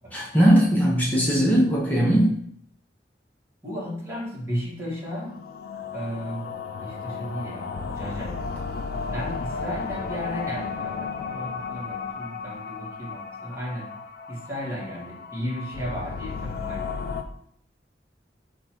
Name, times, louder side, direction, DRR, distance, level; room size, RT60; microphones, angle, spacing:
voice 1, 0.1-2.3, equal, 10° left, -4 dB, 0.7 m, -19 dB
voice 2, 3.6-5.3 5.9-6.5 6.8-8.6 9.1-13.9 14.3-17.2, equal, 15° right, -7 dB, 1.3 m, -34 dB
sound 1, 5.0-17.2, left 5 dB, 55° left, 0.3 m, -34 dB
3.7 x 2.3 x 4.3 m, 0.67 s
head